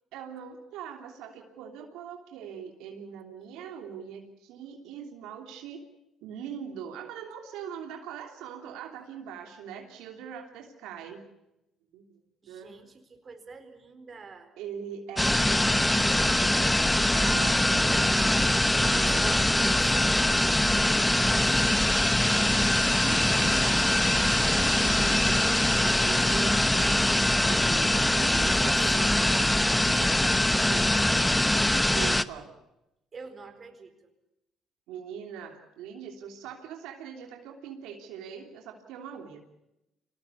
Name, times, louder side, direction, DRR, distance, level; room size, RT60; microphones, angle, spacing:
voice 1, 0.1-5.8 6.2-11.2 11.9-12.2 12.5-12.7 14.6-16.8 17.1-19.3 22.8-29.1 29.9-30.4 30.7-31.1 31.9-32.5 34.9-39.4, right 8 dB, 80° right, 3 dB, 3.2 m, -41 dB
voice 2, 12.4-14.5 17.9-18.5 19.0-21.9 28.6-30.2 31.1-31.7 33.1-34.1, right 4 dB, 40° right, 8 dB, 4.4 m, -47 dB
sound 1, 15.2-32.2, left 1 dB, 10° left, 1.0 m, -23 dB
25.0 x 19.0 x 8.4 m, 0.88 s
supercardioid pair, 75°, 0 cm